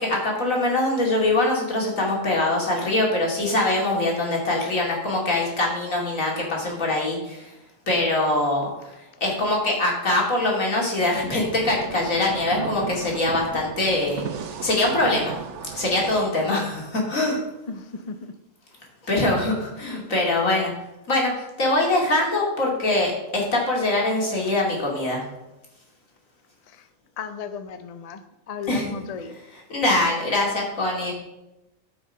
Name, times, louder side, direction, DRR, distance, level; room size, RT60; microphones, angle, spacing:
voice 1, 0.0-7.5 7.9-8.7 9.2-14.3 14.6-15.4 15.7-17.4 19.1-20.7 21.1-25.2 28.7-28.9 29.7-31.1, left 2 dB, 90° left, -2 dB, 3.0 m, -23 dB
sound 1, 11.2-16.2, right 7 dB, 65° right, 1.0 m, -35 dB
voice 2, 17.7-18.1 24.4-24.5 26.7-26.9 27.2-29.4, left 6 dB, 40° left, 10 dB, 0.6 m, -35 dB
13.0 x 5.7 x 5.4 m, 0.95 s
omnidirectional pair, 1.4 m